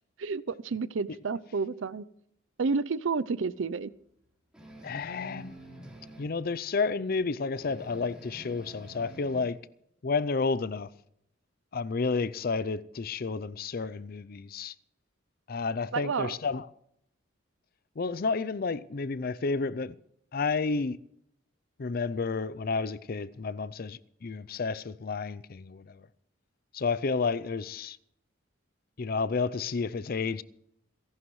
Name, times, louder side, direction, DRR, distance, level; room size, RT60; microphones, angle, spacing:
voice 1, 0.2-2.0 2.6-3.9 15.9-16.4, right 4 dB, 75° right, 0.5 m, -30 dB
sound 1, 4.5-6.4 7.5-9.4, right 1 dB, 5° right, 3.9 m, -48 dB
voice 2, 4.8-5.6 6.2-9.6 10.0-10.9 11.7-14.7 15.5-16.7 18.0-19.9 20.3-21.0 21.8-26.0 26.7-28.0 29.0-30.4, left 4 dB, 50° left, 0.5 m, -31 dB
28.0 x 11.5 x 3.2 m
head